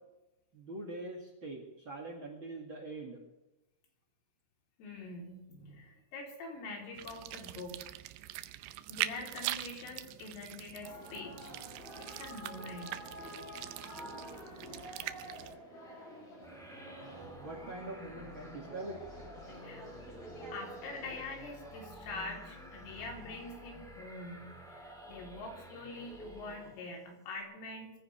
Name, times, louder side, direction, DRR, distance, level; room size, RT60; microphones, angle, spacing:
voice 1, 0.5-3.2 17.4-19.0, right 2 dB, 50° right, 1 dB, 1.5 m, -43 dB
voice 2, 4.8-7.9 8.9-11.5 12.0-13.0 19.5-19.8 20.5-27.9, left 2 dB, 75° left, 0 dB, 6.1 m, -45 dB
sound 1, 7.0-15.6, right 15 dB, 80° right, 2.9 m, -42 dB
sound 2, 10.8-21.2, equal, 30° left, 5.7 m, -49 dB
sound 3, 16.4-27.0, equal, ahead, 2.4 m, -50 dB
23.5 x 15.0 x 3.4 m, 0.96 s
omnidirectional pair, 5.8 m